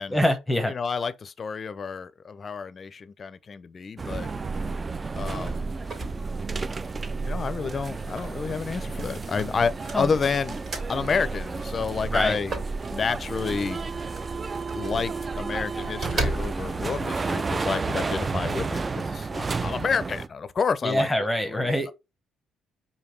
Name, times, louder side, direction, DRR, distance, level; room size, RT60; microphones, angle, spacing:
voice 1, 0.1-0.7 9.9-10.1 12.1-12.4 20.8-21.9, left 1 dB, 10° left, 0.8 m, -24 dB
voice 2, 0.7-4.3 5.1-5.7 7.2-10.6 10.9-12.5 12.9-13.8 14.7-21.7, left 5 dB, 45° left, 0.4 m, -29 dB
sound 1, 4.0-20.3, right 4 dB, 30° right, 0.3 m, -32 dB
sound 2, 4.3-16.9, right 3 dB, 55° right, 2.2 m, -35 dB
5.0 x 2.7 x 3.1 m
supercardioid pair, 70°, 0 cm